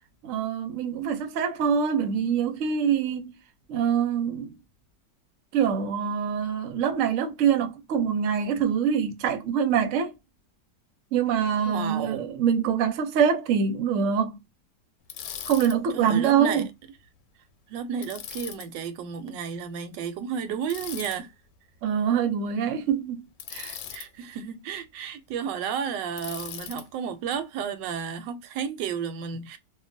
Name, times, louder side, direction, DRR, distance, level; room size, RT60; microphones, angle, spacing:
voice 1, 0.2-3.3 3.7-4.5 5.5-10.1 11.1-14.4 15.5-16.7 21.8-23.8, right 7 dB, 65° right, 0.8 m, -25 dB
voice 2, 11.6-12.3 15.9-16.6 17.7-21.3 23.9-29.6, right 7 dB, 85° right, 1.2 m, -32 dB
Bicycle, 15.1-15.8 18.0-18.7 20.7-21.2 23.4-24.1 26.2-26.9, left 9 dB, 85° left, 1.2 m, -38 dB
2.8 x 2.2 x 2.5 m
omnidirectional pair, 1.9 m